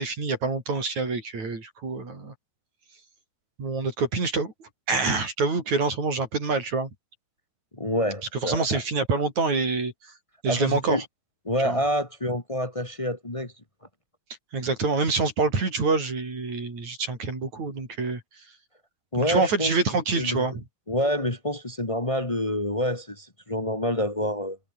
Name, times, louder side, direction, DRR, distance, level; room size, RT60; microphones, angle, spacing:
voice 1, 0.0-2.3 3.6-6.9 8.4-10.1 10.4-11.1 11.6-11.8 14.5-18.4 19.1-20.6, right 4 dB, 45° right, 7.7 m, -26 dB
voice 2, 7.7-8.8 10.5-11.0 11.4-13.5 19.1-19.8 20.1-20.5 20.9-24.6, left 1 dB, 50° left, 0.4 m, -27 dB
omnidirectional pair, 4.6 m